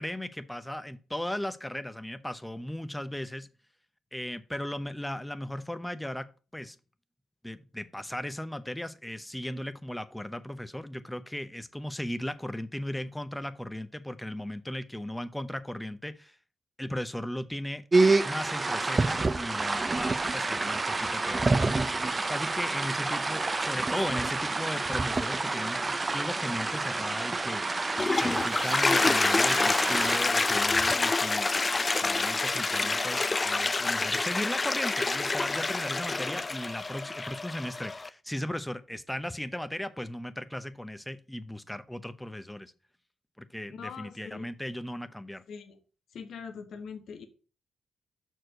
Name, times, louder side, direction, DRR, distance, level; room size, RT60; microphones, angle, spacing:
voice 1, 0.0-3.5 4.1-6.3 6.5-6.8 7.4-16.4 16.8-17.8 18.2-27.9 28.2-42.7 43.4-45.4, left 1 dB, 10° left, 0.8 m, -37 dB
sound 1, 17.9-30.2, right 3 dB, 35° right, 0.7 m, -28 dB
Toilet flush, 27.8-38.1, left 3 dB, 30° left, 0.4 m, -27 dB
voice 2, 43.7-44.5 45.5-45.8 46.1-47.3, left 6 dB, 70° left, 1.1 m, -42 dB
6.1 x 4.7 x 6.4 m
supercardioid pair, 50°, 0 cm